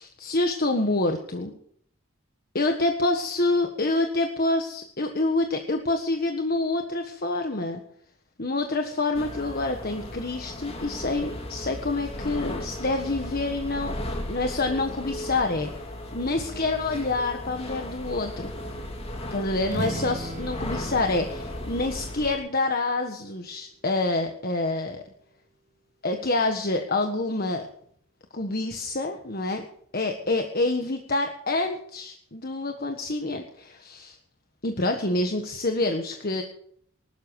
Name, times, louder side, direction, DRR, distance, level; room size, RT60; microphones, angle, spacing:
voice 1, 0.0-1.5 2.5-7.8 8.4-15.7 16.1-18.5 19.3-25.0 26.0-27.7 28.3-29.7 29.9-34.2 34.6-36.4, left 2 dB, 45° left, 4 dB, 1.5 m, -27 dB
sound 1, 9.1-22.3, left 1 dB, 30° left, 2.7 m, -36 dB
sound 2, 19.6-23.4, right 2 dB, 35° right, 0.7 m, -38 dB
20.0 x 12.5 x 4.8 m, 0.62 s
head